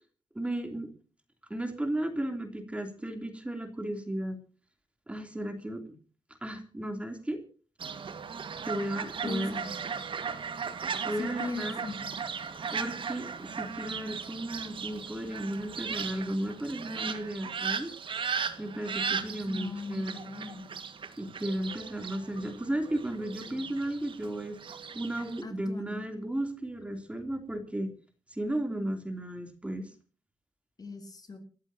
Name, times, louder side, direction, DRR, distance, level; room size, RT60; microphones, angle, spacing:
voice 1, 0.3-0.9 1.5-4.4 5.1-5.9 6.4-7.4 8.6-9.5 11.0-11.8 12.7-17.9 18.6-20.3 21.2-24.6 24.9-27.9 28.3-29.9, right 1 dB, 10° right, 6 dB, 3.2 m, -34 dB
Fowl, 7.8-25.4, right 6 dB, 60° right, 1.8 m, -37 dB
voice 2, 9.2-9.8 11.2-12.1 19.0-20.7 25.4-26.0 30.8-31.4, left 3 dB, 40° left, 6 dB, 3.3 m, -39 dB
30.0 x 14.0 x 2.9 m, 0.39 s
wide cardioid pair, 120°, 10 cm